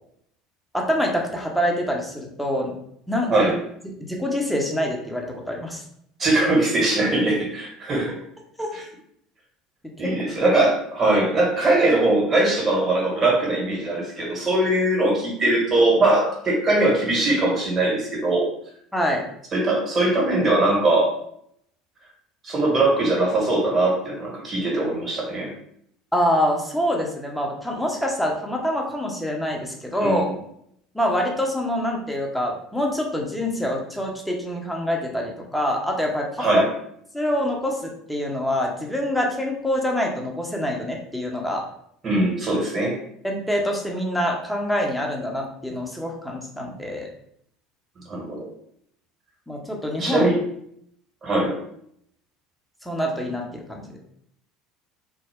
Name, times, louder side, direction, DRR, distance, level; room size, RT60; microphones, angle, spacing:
voice 1, 0.7-2.8 3.1-3.5 4.0-5.8 8.6-8.7 10.0-10.1 18.9-19.3 26.1-30.3 30.9-36.7 37.1-41.6 43.2-47.1 49.5-50.3 52.8-53.8, equal, ahead, 0 dB, 0.7 m, -25 dB
voice 2, 6.2-8.2 8.7-8.8 10.0-18.5 19.5-21.1 22.4-25.5 30.0-30.3 36.4-36.6 42.0-43.0 48.1-48.4 50.0-50.4 51.2-51.6, right 2 dB, 35° right, -3 dB, 1.3 m, -21 dB
2.2 x 2.1 x 3.5 m, 0.70 s
hypercardioid pair, 70°, 0 cm